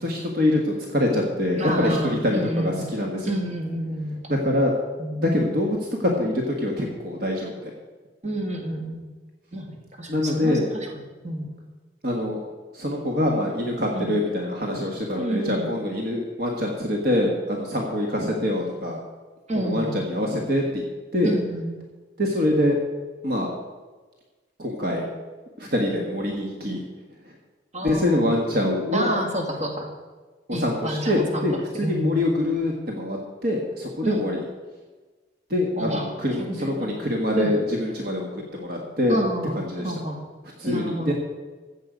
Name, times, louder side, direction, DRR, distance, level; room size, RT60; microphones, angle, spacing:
voice 1, 0.0-3.3 4.3-4.7 5.2-7.7 10.1-10.6 12.0-12.4 12.7-19.0 19.6-20.8 21.1-21.3 22.2-22.8 23.2-23.5 24.6-25.1 25.6-26.8 27.8-29.1 30.6-34.4 35.5-39.2 39.5-39.9 40.6-41.1, left 1 dB, 55° right, 0 dB, 1.6 m, -24 dB
voice 2, 1.6-3.0 3.2-4.6 5.0-5.2 8.2-9.0 9.5-11.5 13.9-14.1 15.1-15.7 19.5-20.0 21.2-21.7 27.7-28.4 28.9-29.9 30.5-32.2 34.0-34.3 35.8-36.1 36.4-37.0 37.4-37.7 39.1-40.2 40.6-41.1, right 1 dB, 40° right, 1 dB, 2.0 m, -29 dB
14.5 x 7.8 x 5.2 m, 1.3 s
head